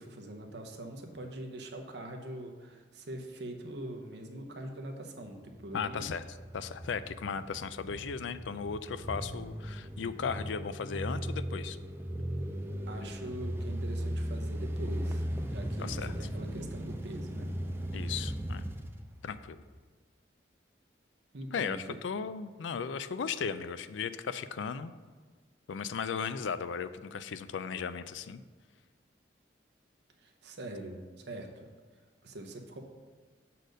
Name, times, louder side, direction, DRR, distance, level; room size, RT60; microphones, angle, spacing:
voice 1, 0.0-6.1 12.9-17.5 21.3-21.8 30.2-31.7 32.2-32.8, right 1 dB, 65° right, 3 dB, 0.8 m, -43 dB
sound 1, 5.4-19.8, equal, 10° right, 0.4 m, -37 dB
voice 2, 5.7-6.2 6.5-11.8 15.8-16.1 17.9-18.7 19.2-19.6 21.5-24.9 25.7-28.4, left 6 dB, 90° left, 13 dB, 0.4 m, -36 dB
6.5 x 4.2 x 6.3 m, 1.5 s
head